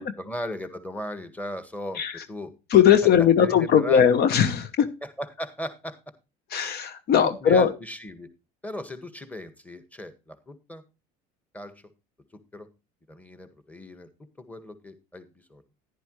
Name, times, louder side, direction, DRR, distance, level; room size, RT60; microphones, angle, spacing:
voice 1, 0.0-2.0 2.3-2.5 3.4-4.1 5.0-6.0 7.2-8.3 8.6-10.8 11.5-11.7 12.5-12.7 13.1-14.1 14.4-15.7, equal, 10° left, 10 dB, 1.8 m, -37 dB
voice 2, 2.7-4.9 6.5-7.7, left 8 dB, 55° left, 12 dB, 1.1 m, -19 dB
11.0 x 10.5 x 3.2 m, 0.28 s
supercardioid pair, 90°, 20 cm